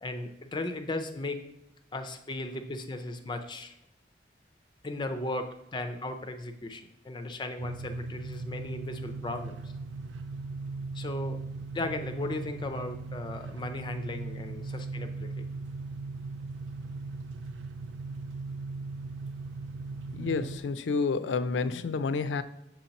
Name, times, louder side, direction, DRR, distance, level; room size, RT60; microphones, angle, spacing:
voice 1, 0.0-1.4 1.9-3.8 4.8-9.7 10.9-11.4 11.7-15.4, left 2 dB, 25° left, 7 dB, 0.4 m, -36 dB
sound 1, 7.6-20.6, right 3 dB, 90° right, 0.3 m, -38 dB
voice 2, 20.1-22.4, left 4 dB, 85° left, 13 dB, 0.4 m, -29 dB
7.4 x 2.9 x 5.1 m, 0.84 s
head